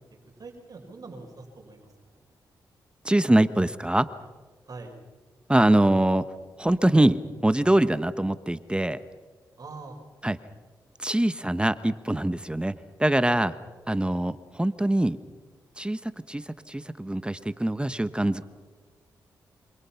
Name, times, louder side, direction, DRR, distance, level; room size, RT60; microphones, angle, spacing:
voice 1, 0.4-2.2 4.6-5.0 9.6-10.0, right 3 dB, 50° right, 2 dB, 5.0 m, -43 dB
voice 2, 3.0-4.1 5.5-6.3 6.6-9.0 10.2-10.4 11.0-13.6 13.9-15.2 15.8-18.4, right 1 dB, 10° right, 13 dB, 1.2 m, -23 dB
27.5 x 26.5 x 5.9 m, 1.4 s
supercardioid pair, 50°, 8 cm